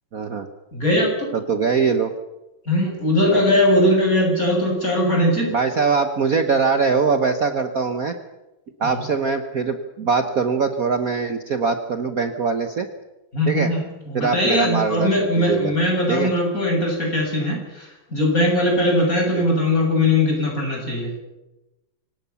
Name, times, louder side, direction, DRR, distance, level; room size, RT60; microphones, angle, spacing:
voice 1, 0.1-0.5 1.3-2.1 3.3-3.6 5.5-8.1 8.8-12.9 13.4-13.7 14.1-15.7 16.1-16.3 19.3-19.4, right 5 dB, 45° right, 7 dB, 1.4 m, -22 dB
voice 2, 0.7-1.3 2.7-5.5 8.8-9.0 13.3-21.1, left 1 dB, 40° left, 0 dB, 8.2 m, -20 dB
25.5 x 18.0 x 7.1 m, 1.0 s
omnidirectional pair, 2.4 m